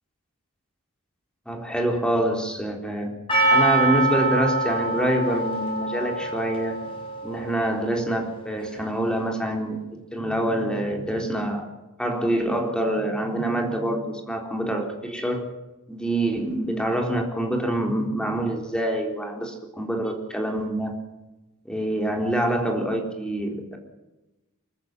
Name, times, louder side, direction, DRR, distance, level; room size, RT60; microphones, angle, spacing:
voice 1, 1.5-3.1 3.5-6.8 7.2-11.7 12.0-15.5 15.9-21.0 21.7-23.8, right 1 dB, 5° left, 2 dB, 3.9 m, -26 dB
Percussion, 3.3-8.3, right 2 dB, 25° left, 6.4 m, -25 dB
24.5 x 14.0 x 7.7 m, 1.0 s
head